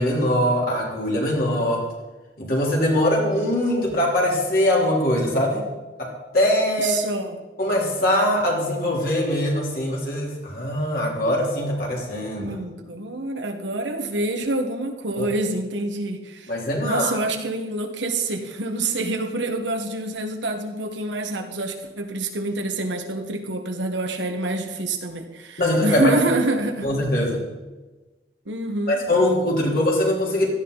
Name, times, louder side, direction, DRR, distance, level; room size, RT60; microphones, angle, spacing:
voice 1, 0.0-1.8 2.4-5.6 6.0-7.0 7.6-12.6 15.2-15.3 16.5-17.1 25.6-26.1 26.8-27.4 28.9-30.5, left 1 dB, 55° left, -3 dB, 3.8 m, -22 dB
voice 2, 6.8-7.4 12.4-16.5 16.8-26.9 28.4-29.0, right 2 dB, 85° right, 5 dB, 1.6 m, -27 dB
16.5 x 13.0 x 4.1 m, 1.2 s
head